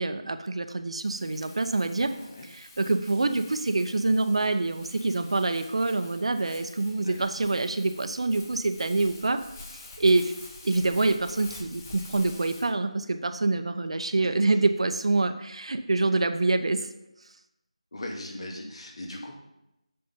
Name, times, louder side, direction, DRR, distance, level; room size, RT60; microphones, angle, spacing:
voice 1, 0.0-2.1 2.5-9.4 9.7-10.3 10.6-16.9, right 2 dB, 55° right, 9 dB, 0.7 m, -26 dB
Crumpling crinkling, 1.0-12.7, left 3 dB, 20° left, 0.9 m, -48 dB
voice 2, 2.1-2.5 7.0-7.2 17.9-19.3, left 1 dB, 55° left, 1 dB, 2.0 m, -39 dB
7.8 x 6.7 x 5.5 m, 0.88 s
figure-of-eight pair, 170°, 4 cm